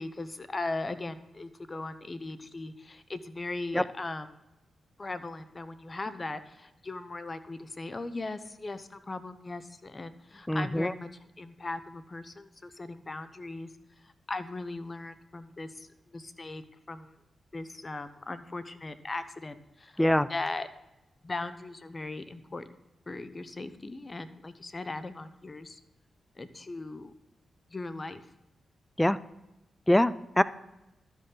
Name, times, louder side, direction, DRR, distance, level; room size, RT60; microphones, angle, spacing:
voice 1, 0.0-4.3 5.0-11.1 11.4-13.7 14.3-17.1 17.5-20.0 20.3-20.7 21.2-22.7 23.1-25.8 26.4-27.1 27.7-28.2, left 2 dB, 40° left, 12 dB, 0.8 m, -38 dB
voice 2, 10.5-10.9 20.0-20.3 29.0-29.2 29.9-30.4, left 1 dB, 10° left, 16 dB, 0.5 m, -23 dB
12.5 x 5.5 x 3.9 m, 0.95 s
supercardioid pair, 40°, 0 cm